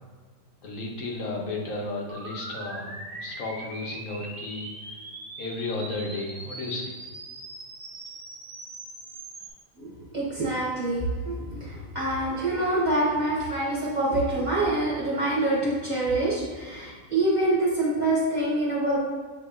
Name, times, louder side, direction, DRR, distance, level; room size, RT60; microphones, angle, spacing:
voice 1, 0.6-5.0 5.4-7.0, left 2 dB, 80° left, -1 dB, 1.2 m, -33 dB
sound 1, 2.1-9.5, right 2 dB, 60° right, 0.9 m, -41 dB
voice 2, 9.8-19.0, right 2 dB, 40° right, -6 dB, 1.0 m, -26 dB
6.9 x 2.9 x 2.4 m, 1.5 s
omnidirectional pair, 1.3 m